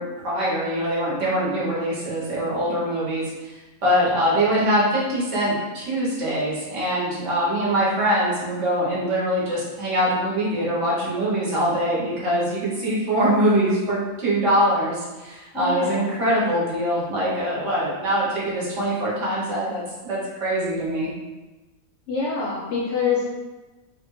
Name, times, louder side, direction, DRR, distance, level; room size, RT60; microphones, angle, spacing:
voice 1, 0.0-21.1, equal, 55° right, -7 dB, 1.1 m, -23 dB
voice 2, 15.5-16.1 22.1-23.3, left 5 dB, 65° left, -5 dB, 0.7 m, -25 dB
3.4 x 2.1 x 3.0 m, 1.2 s
omnidirectional pair, 1.6 m